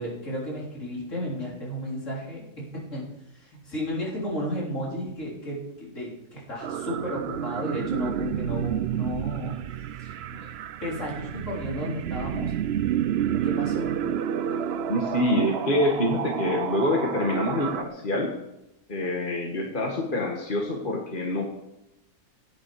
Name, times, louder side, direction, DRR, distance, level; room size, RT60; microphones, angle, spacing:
voice 1, 0.0-3.1 3.3-9.6 10.0-10.5 10.8-12.5 13.4-13.9, left 1 dB, 50° left, -4 dB, 4.1 m, -33 dB
sound 1, 6.6-17.8, right 9 dB, 75° right, 0.5 m, -30 dB
voice 2, 14.9-18.3 18.9-21.6, left 1 dB, 30° left, 0 dB, 1.7 m, -26 dB
17.0 x 10.0 x 4.8 m, 0.90 s
omnidirectional pair, 1.7 m